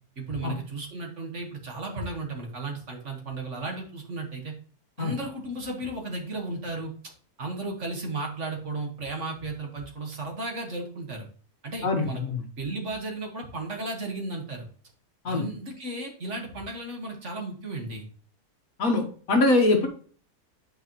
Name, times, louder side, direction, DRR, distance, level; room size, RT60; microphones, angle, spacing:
voice 1, 0.2-4.5 5.0-6.9 7.4-11.3 11.6-12.2 12.6-14.7 15.3-18.1, right 2 dB, 45° right, 2 dB, 1.6 m, -34 dB
voice 2, 11.8-12.4 15.2-15.5 18.8-19.9, left 2 dB, 55° left, 4 dB, 1.5 m, -23 dB
8.8 x 4.9 x 2.9 m, 0.43 s
omnidirectional pair, 1.8 m